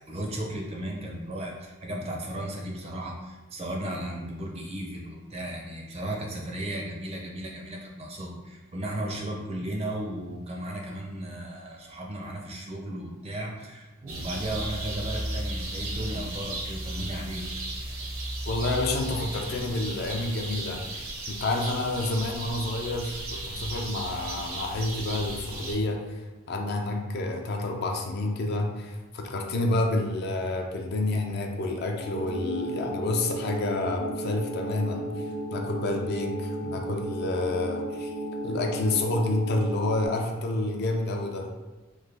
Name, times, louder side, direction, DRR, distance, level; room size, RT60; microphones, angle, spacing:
voice 1, 0.1-17.4, right 1 dB, 30° right, 0 dB, 0.4 m, -35 dB
sound 1, 14.1-25.8, right 1 dB, 70° right, 0.6 m, -35 dB
voice 2, 18.5-23.2 23.4-26.2 26.5-35.1 35.5-38.1 38.4-41.5, left 2 dB, 50° left, 2 dB, 0.3 m, -29 dB
sound 2, 32.0-40.1, right 1 dB, 80° left, 0.9 m, -34 dB
3.1 x 2.1 x 3.3 m, 1.1 s
head